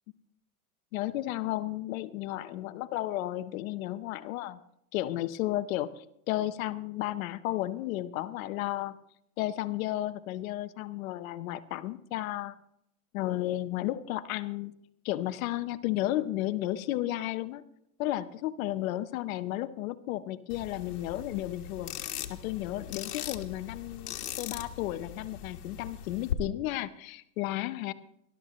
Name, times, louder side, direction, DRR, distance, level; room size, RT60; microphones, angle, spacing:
voice 1, 0.9-4.6 4.9-9.0 9.4-12.6 13.1-14.7 15.0-17.6 18.0-21.9 22.3-27.9, left 15 dB, 65° left, 13 dB, 0.9 m, -33 dB
sound 1, 20.5-26.3, left 10 dB, 90° left, 1.5 m, -39 dB
19.5 x 12.5 x 3.1 m, 0.77 s
supercardioid pair, 125°, 44 cm